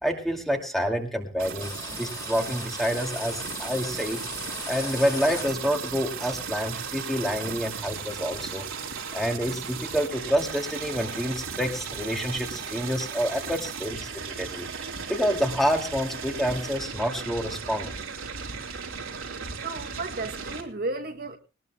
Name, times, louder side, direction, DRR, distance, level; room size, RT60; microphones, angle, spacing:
voice 1, 0.0-4.2 4.7-8.6 9.1-17.9, equal, ahead, 2.4 m, -28 dB
sound 1, 1.4-20.6, right 6 dB, 80° right, 3.5 m, -36 dB
sound 2, 1.6-5.9, left 3 dB, 20° left, 2.3 m, -39 dB
voice 2, 19.6-21.4, right 2 dB, 50° right, 2.0 m, -33 dB
21.0 x 19.5 x 2.3 m
head